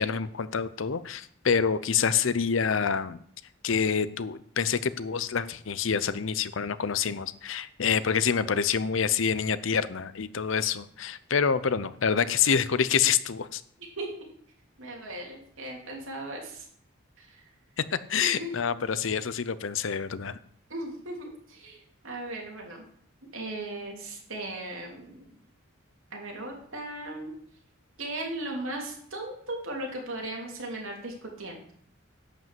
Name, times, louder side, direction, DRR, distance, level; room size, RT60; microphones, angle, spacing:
voice 1, 0.0-3.2 3.6-13.6 17.8-20.4, left 6 dB, 65° left, 15 dB, 0.6 m, -27 dB
voice 2, 14.8-16.7 17.2-17.4 18.2-18.5 19.0-19.2 20.7-22.8 23.3-25.2 26.1-27.3 28.0-31.6, right 1 dB, 70° right, 0 dB, 3.3 m, -37 dB
11.0 x 5.4 x 7.5 m, 0.64 s
head